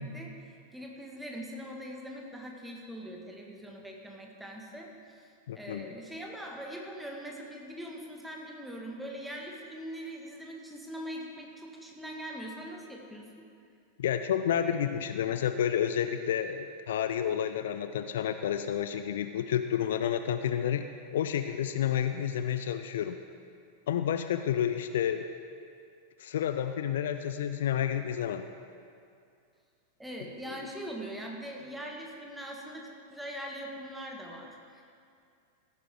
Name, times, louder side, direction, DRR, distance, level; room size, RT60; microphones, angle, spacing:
voice 1, 0.0-13.4 30.0-34.8, equal, 5° right, -1 dB, 1.7 m, -42 dB
voice 2, 5.5-5.9 14.0-20.8 21.1-23.2 23.9-25.3 26.2-28.4, left 9 dB, 60° left, 9 dB, 0.4 m, -30 dB
16.0 x 9.4 x 3.7 m, 2.4 s
figure-of-eight pair, 90°, 0 cm